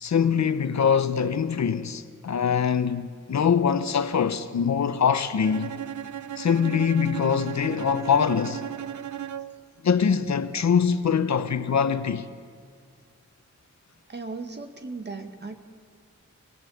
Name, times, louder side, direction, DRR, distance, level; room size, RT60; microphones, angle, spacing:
voice 1, 0.0-5.8 6.4-8.6 9.8-12.3, left 7 dB, 65° left, 1.0 m, -23 dB
Bowed string instrument, 5.4-9.7, right 10 dB, 75° right, 0.7 m, -35 dB
voice 2, 14.1-15.6, right 3 dB, 35° right, 1.8 m, -36 dB
24.0 x 19.0 x 8.5 m
wide cardioid pair, 160°, 30 cm